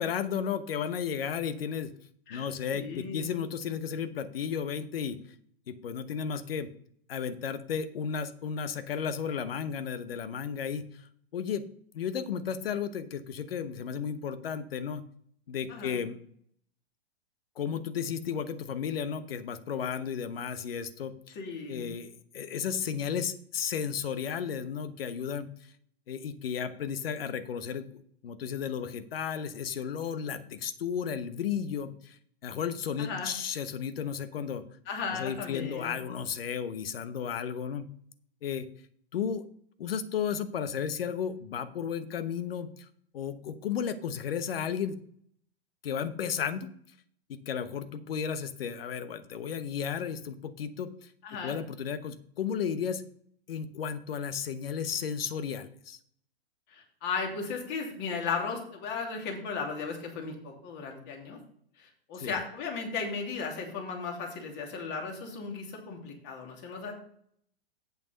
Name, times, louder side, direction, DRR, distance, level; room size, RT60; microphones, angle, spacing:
voice 1, 0.0-1.9 2.3-5.2 5.7-6.7 7.1-11.6 11.9-15.0 15.5-16.2 17.6-21.4 21.7-25.5 26.1-34.6 35.1-37.9 38.4-38.7 39.1-39.4 39.8-42.9 43.1-45.0 45.8-46.7 47.3-51.1 51.4-53.0 53.5-56.0 62.2-62.4, left 7 dB, 65° left, 13 dB, 1.1 m, -34 dB
voice 2, 2.7-3.3 15.7-16.0 21.3-21.9 33.0-33.3 34.9-36.0 51.2-51.5 56.7-61.4 61.8-66.9, left 5 dB, 35° left, 1 dB, 2.8 m, -36 dB
8.4 x 7.1 x 5.2 m, 0.63 s
figure-of-eight pair, 110°, 32 cm